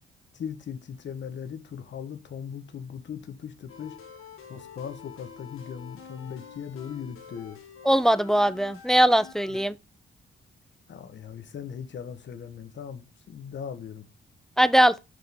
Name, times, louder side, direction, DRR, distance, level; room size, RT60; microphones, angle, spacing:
voice 1, 0.3-4.0 4.5-7.6 10.9-14.0, left 7 dB, 60° left, 1.0 m, -39 dB
sound 1, 3.7-9.7, left 6 dB, 85° left, 1.4 m, -47 dB
voice 2, 7.9-9.7 14.6-15.0, right 1 dB, ahead, 0.4 m, -20 dB
6.1 x 4.9 x 3.5 m
cardioid pair, 75°, 21 cm